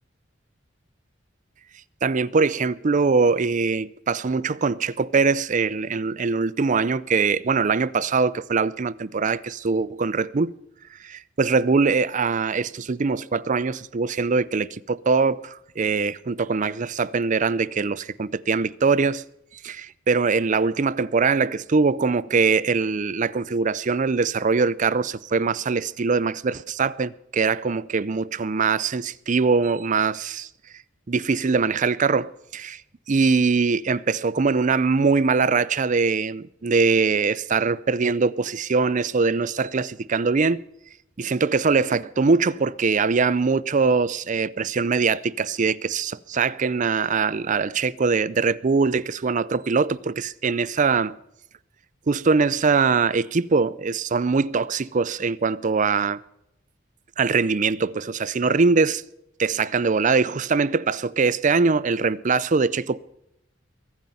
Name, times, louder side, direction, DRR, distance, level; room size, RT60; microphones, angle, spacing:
voice 1, 2.0-10.5 11.0-19.2 19.6-30.5 31.1-32.8 33.1-40.6 41.2-51.2 52.1-56.2 57.2-59.0 59.4-63.0, right 4 dB, 40° right, 0.5 m, -22 dB
22.5 x 9.3 x 5.7 m
head